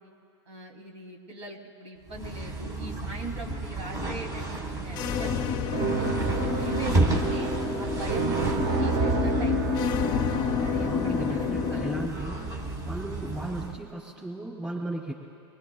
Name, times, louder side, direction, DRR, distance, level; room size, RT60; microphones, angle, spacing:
voice 1, 0.5-6.1 6.6-7.5 7.8-10.2 10.6-12.1 13.1-13.4, right 3 dB, 80° right, 0 dB, 3.0 m, -41 dB
sound 1, 2.1-13.8, right 2 dB, 25° right, 1.8 m, -32 dB
sound 2, 4.9-12.1, left 8 dB, 30° left, 0.5 m, -30 dB
sound 3, 5.7-12.8, right 5 dB, 45° right, 1.3 m, -31 dB
voice 2, 8.2-8.6 10.9-12.5 12.8-15.1, right 2 dB, 5° right, -2 dB, 2.7 m, -35 dB
24.5 x 20.0 x 2.3 m, 2.3 s
hypercardioid pair, 135°, 14 cm